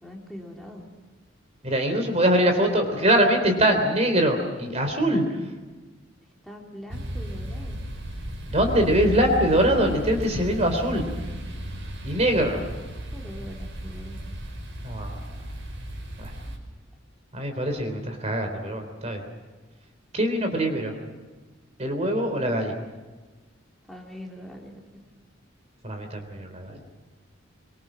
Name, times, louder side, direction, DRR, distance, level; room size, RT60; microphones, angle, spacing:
voice 1, 0.0-0.8 6.4-7.8 13.1-14.2 23.9-24.8, equal, ahead, -1 dB, 3.4 m, -42 dB
voice 2, 1.6-5.4 8.5-11.0 12.0-12.6 14.8-15.4 16.2-16.3 17.3-19.2 20.1-20.9 21.8-22.8 25.8-26.8, right 1 dB, 35° right, 5 dB, 3.7 m, -23 dB
sound 1, 6.9-16.6, equal, 75° right, 5.6 m, -34 dB
24.5 x 24.5 x 6.3 m, 1.3 s
head